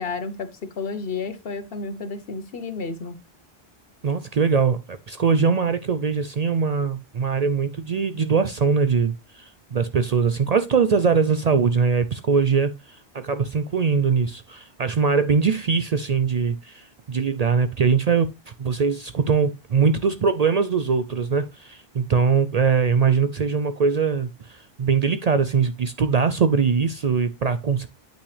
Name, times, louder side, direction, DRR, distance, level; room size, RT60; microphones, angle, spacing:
voice 1, 0.0-3.2, left 4 dB, 65° left, 1.1 m, -31 dB
voice 2, 4.0-18.3 18.6-27.9, right 5 dB, 50° right, 0.5 m, -22 dB
8.8 x 5.8 x 3.3 m
omnidirectional pair, 1.0 m